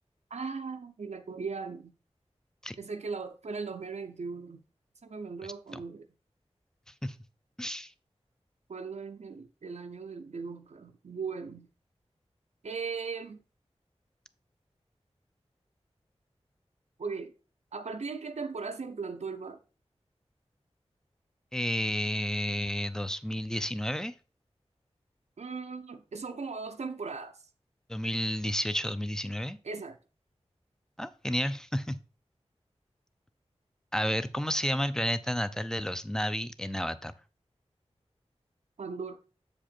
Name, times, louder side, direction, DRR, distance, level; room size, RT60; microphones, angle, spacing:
voice 1, 0.3-1.9 2.8-4.6 5.0-6.1 8.7-11.7 12.6-13.4 17.0-17.3 17.7-19.6 25.4-27.4 29.6-30.0 38.8-39.2, right 4 dB, 80° right, 0.6 m, -38 dB
voice 2, 7.6-7.9 21.5-24.1 27.9-29.6 31.0-32.0 33.9-37.1, equal, 5° left, 0.5 m, -31 dB
7.6 x 5.1 x 4.3 m
wide cardioid pair, 65°, 11 cm